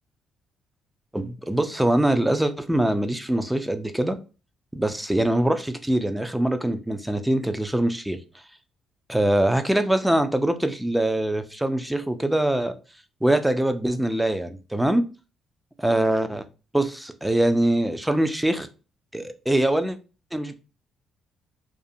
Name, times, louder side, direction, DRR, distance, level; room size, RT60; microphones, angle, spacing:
voice 1, 1.1-4.2 4.7-8.2 9.1-12.8 13.2-15.1 15.8-16.5 16.7-18.7 19.1-20.0 20.3-20.5, right 1 dB, 5° right, 0.4 m, -23 dB
2.5 x 2.4 x 2.6 m
cardioid pair, 90°, 0 cm